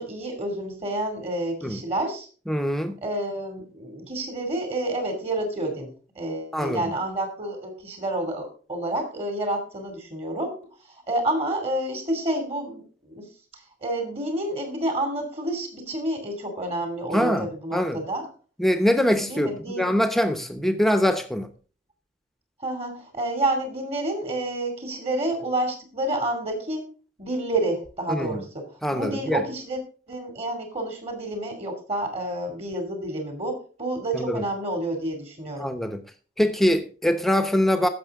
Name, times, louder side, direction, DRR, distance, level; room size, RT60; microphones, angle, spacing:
voice 1, 0.0-2.3 3.0-10.7 11.1-13.3 13.8-18.3 19.2-19.9 22.6-26.9 27.2-29.8 30.1-35.7, right 1 dB, 35° right, 2.7 m, -29 dB
voice 2, 2.5-3.0 6.5-6.9 17.1-18.0 18.6-21.5 28.1-28.4 28.8-29.4 34.1-34.4 35.6-36.0 36.4-37.9, equal, ahead, 0.9 m, -23 dB
15.0 x 6.2 x 3.7 m
head